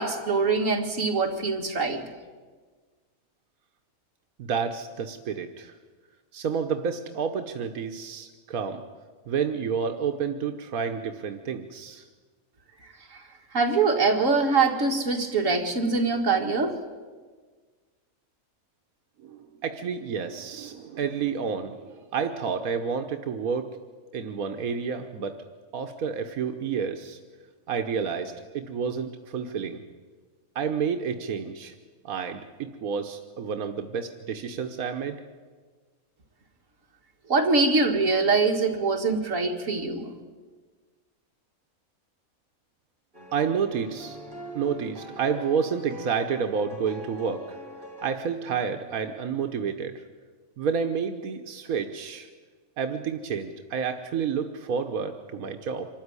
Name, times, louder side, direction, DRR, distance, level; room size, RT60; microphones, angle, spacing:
voice 1, 0.0-2.0 13.5-16.8 37.3-40.1, right 4 dB, 65° right, 2 dB, 2.4 m, -23 dB
voice 2, 4.4-5.7 6.3-8.8 9.3-12.1 19.2-23.7 24.1-25.4 25.7-27.2 27.7-29.8 30.5-31.7 32.0-35.2 43.3-44.2 44.5-47.4 48.0-50.0 50.6-52.3 52.8-55.9, right 6 dB, 90° right, 6 dB, 1.5 m, -30 dB
sound 1, 43.1-48.2, equal, 40° right, 5.1 m, -42 dB
25.0 x 13.5 x 9.7 m, 1.5 s
omnidirectional pair, 1.5 m